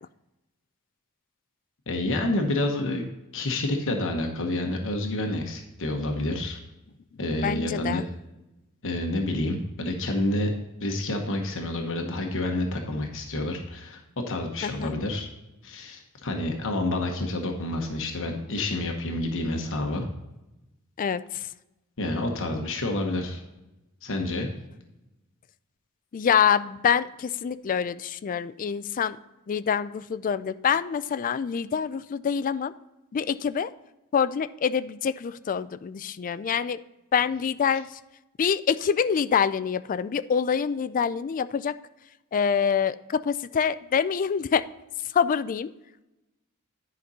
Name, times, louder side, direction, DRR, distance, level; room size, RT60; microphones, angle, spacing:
voice 1, 1.9-3.1 3.3-6.6 7.2-8.0 8.8-10.5 10.8-14.0 14.3-15.3 15.6-20.1 22.0-23.4 24.0-24.5, left 1 dB, 60° left, 3 dB, 1.1 m, -28 dB
voice 2, 7.4-8.0 14.6-14.9 21.0-21.2 26.1-29.2 29.5-32.7 33.1-33.7 34.1-36.8 37.1-37.9 38.4-41.7 42.3-44.6 45.1-45.7, left 7 dB, 40° left, 14 dB, 0.3 m, -26 dB
10.0 x 5.2 x 4.1 m, 0.98 s
head